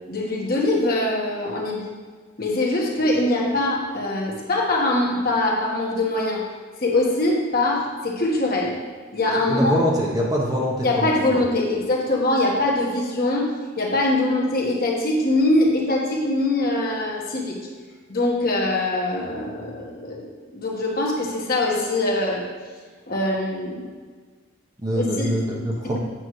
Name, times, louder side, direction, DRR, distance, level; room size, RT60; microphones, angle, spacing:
voice 1, 0.1-1.9 2.4-6.4 6.8-8.8 9.1-9.8 10.8-13.5 13.8-17.6 18.1-22.4 23.1-23.8 24.9-25.4 25.8-26.0, left 2 dB, 45° left, -2 dB, 1.4 m, -23 dB
voice 2, 9.5-11.1 24.8-26.0, equal, 15° right, -3 dB, 0.9 m, -24 dB
8.8 x 7.2 x 3.2 m, 1.5 s
head